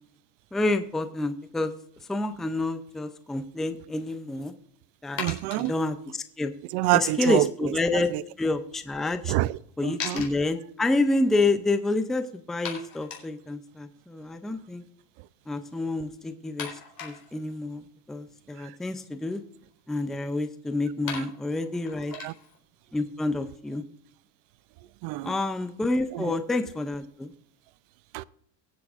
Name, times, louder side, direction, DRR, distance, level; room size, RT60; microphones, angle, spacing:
voice 1, 0.5-1.7 2.1-4.5 5.0-5.2 5.5-6.5 6.9-8.1 8.4-9.3 9.8-14.8 15.5-16.7 17.0-19.4 19.9-22.1 22.9-23.8 25.2-27.3, left 2 dB, ahead, 0.4 m, -28 dB
sound 1, 4.0-4.1 5.2-5.7 8.9-9.0 9.2-9.3 10.0-10.3 11.3-11.4 11.7-11.8 12.6-13.3 15.5-15.6 16.6-17.5 18.9-20.0 20.8-20.9 21.1-22.6, left 6 dB, 45° left, 4.1 m, -38 dB
voice 2, 5.2-5.7 6.7-8.2 9.3-10.2 18.6-18.7 21.1-21.2 22.1-22.3 25.0-25.3 26.1-26.3 28.1-28.2, right 17 dB, 85° right, 0.6 m, -27 dB
23.0 x 8.4 x 2.5 m
cardioid pair, 145°, 48 cm